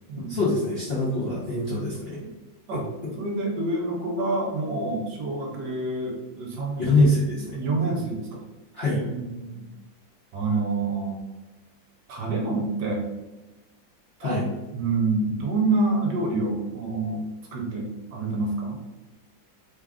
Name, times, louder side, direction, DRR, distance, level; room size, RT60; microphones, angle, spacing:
voice 1, 0.3-2.2 6.8-7.6 8.7-9.0 14.2-14.5, left 2 dB, 50° left, -8 dB, 0.7 m, -24 dB
voice 2, 3.2-7.1 7.3-8.4 9.0-9.6 10.3-11.2 12.1-13.1 14.2-14.4 14.7-17.2 17.5-18.8, right 3 dB, 70° right, 0 dB, 1.2 m, -27 dB
3.6 x 2.4 x 3.4 m, 1.1 s
omnidirectional pair, 2.1 m